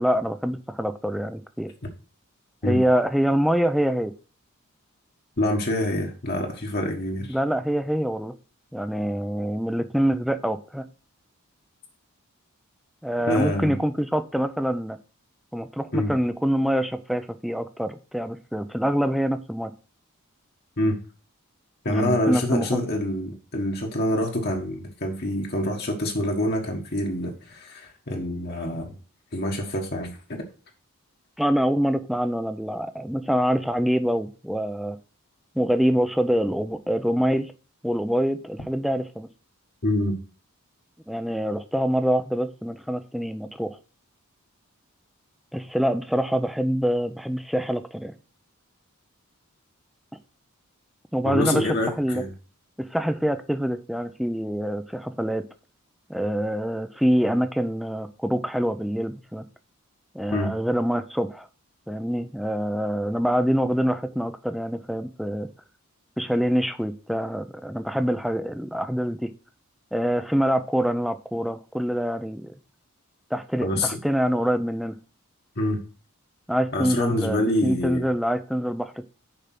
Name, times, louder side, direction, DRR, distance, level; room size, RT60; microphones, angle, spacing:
voice 1, 0.0-1.7 2.6-4.1 7.3-8.3 8.7-10.9 13.0-15.0 15.5-19.7 21.9-22.8 31.4-35.0 35.6-37.5 37.8-39.3 41.1-43.8 45.5-48.1 51.1-51.7 52.0-52.2 52.8-55.4 56.1-59.4 60.1-61.5 61.9-65.5 66.2-69.3 69.9-72.5 73.3-75.0 76.5-79.0, equal, ahead, 0.5 m, -25 dB
voice 2, 5.4-7.4 13.3-13.8 15.9-16.1 20.8-20.9 21.8-28.9 29.3-30.2 39.8-40.2 51.2-52.3 60.3-60.5 73.6-74.0 75.6-75.8 76.7-78.0, left 1 dB, 45° left, 1.4 m, -26 dB
6.8 x 5.1 x 5.9 m
head